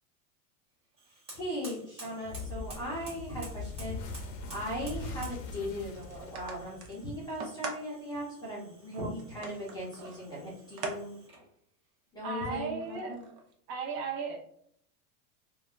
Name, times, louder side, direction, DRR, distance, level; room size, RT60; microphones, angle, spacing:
Fire, 0.9-11.5, right 1 dB, 15° right, 1.1 m, -53 dB
voice 1, 1.1-11.1 12.1-13.2, equal, 10° left, -7 dB, 0.5 m, -38 dB
sound 1, 2.2-7.4, left 3 dB, 50° left, 0.6 m, -41 dB
sound 2, 5.9-7.9 8.4-8.5 9.2-11.0 11.3-11.4 12.4-13.5, right 4 dB, 85° right, 0.8 m, -42 dB
voice 2, 12.2-13.1 13.7-14.4, right 4 dB, 45° right, -1 dB, 0.7 m, -35 dB
3.5 x 2.2 x 2.4 m, 0.67 s
supercardioid pair, 160°, 45 cm